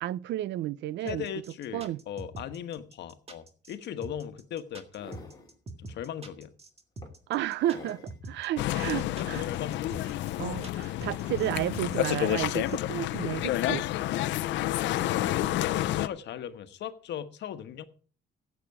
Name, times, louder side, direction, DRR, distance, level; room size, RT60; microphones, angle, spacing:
voice 1, 0.0-1.3 1.7-2.0 7.3-9.4 10.4-13.9, right 14 dB, 75° right, 0.5 m, -32 dB
voice 2, 1.0-5.3 5.8-6.5 7.7-7.9 8.9-10.1 15.1-17.8, left 9 dB, 70° left, 1.3 m, -38 dB
sound 1, 1.1-12.8, right 2 dB, 35° right, 1.8 m, -44 dB
sound 2, 3.8-3.9 4.5-5.6 6.2-6.4 7.0-8.2 8.7-8.8 10.3-10.7 11.1-11.8 13.0-13.9 14.8-15.4 16.8-16.9, left 3 dB, 20° left, 2.6 m, -49 dB
sound 3, 8.6-16.1, left 14 dB, 85° left, 0.7 m, -29 dB
15.0 x 8.2 x 4.8 m
cardioid pair, 125°, 19 cm